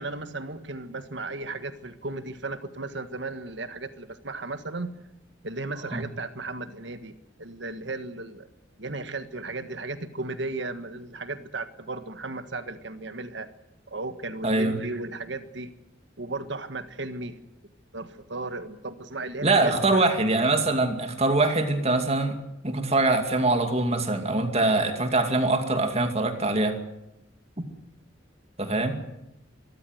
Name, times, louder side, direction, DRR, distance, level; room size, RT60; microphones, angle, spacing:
voice 1, 0.0-4.9 5.4-8.5 8.8-13.5 13.9-15.7 16.2-17.4 17.9-20.1, right 2 dB, 65° right, 10 dB, 1.6 m, -35 dB
voice 2, 14.4-14.8 19.4-22.4 22.6-26.8 28.6-29.0, right 2 dB, 35° right, 6 dB, 2.4 m, -23 dB
23.5 x 14.0 x 9.4 m, 0.90 s
head